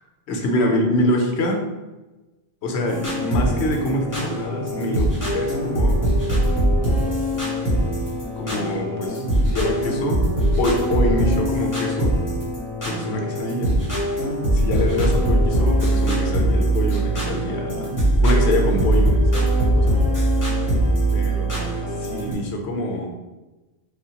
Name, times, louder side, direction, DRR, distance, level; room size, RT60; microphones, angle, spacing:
voice 1, 0.3-1.6 2.6-6.2 8.4-12.1 12.8-13.8 14.5-17.9 18.2-20.0 21.1-23.1, left 1 dB, 90° left, 2 dB, 0.9 m, -25 dB
sound 1, 2.9-22.3, right 1 dB, 20° left, 0.9 m, -21 dB
3.1 x 2.2 x 2.8 m, 1.1 s
omnidirectional pair, 1.1 m